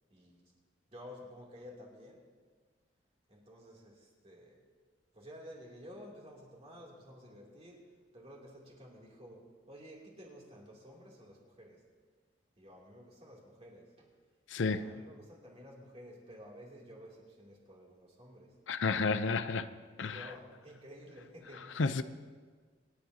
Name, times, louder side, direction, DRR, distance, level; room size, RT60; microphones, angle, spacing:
voice 1, 0.1-0.4 0.9-2.3 3.3-4.6 5.1-11.8 12.6-14.1 14.6-18.6 20.0-21.8, equal, 35° right, -2 dB, 2.9 m, -52 dB
voice 2, 14.5-14.8 18.7-19.7 20.0-20.3 21.8-22.0, left 4 dB, 80° left, 11 dB, 0.6 m, -31 dB
26.5 x 10.5 x 2.8 m, 1.5 s
head